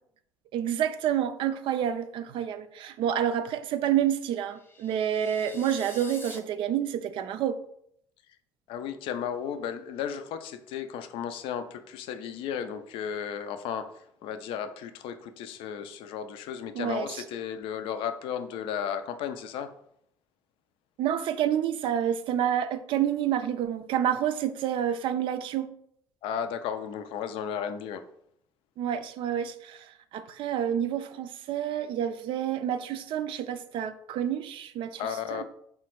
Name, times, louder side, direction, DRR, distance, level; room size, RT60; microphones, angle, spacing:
voice 1, 0.5-7.6 16.8-17.2 21.0-25.7 28.8-35.0 35.3-35.4, right 10 dB, 60° right, 0.4 m, -29 dB
sound 1, 4.4-6.4, left 2 dB, 20° left, 0.7 m, -46 dB
voice 2, 8.7-19.7 26.2-28.0 34.9-35.4, left 8 dB, 65° left, 0.4 m, -34 dB
3.7 x 2.1 x 4.4 m
hypercardioid pair, 65°, 10 cm